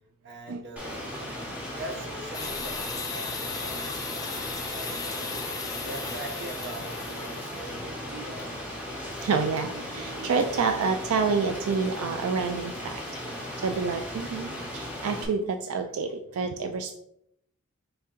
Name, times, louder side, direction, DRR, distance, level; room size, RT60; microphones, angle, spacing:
voice 1, 0.2-1.0 1.7-8.6, right 1 dB, 50° right, 3 dB, 0.8 m, -42 dB
Rain, 0.8-15.3, equal, 5° right, 0.8 m, -37 dB
sound 1, 2.3-7.7, left 5 dB, 15° left, 0.3 m, -36 dB
voice 2, 9.2-13.0 13.3-16.9, right 5 dB, 85° right, 6 dB, 0.3 m, -28 dB
4.4 x 2.7 x 3.6 m, 0.75 s
head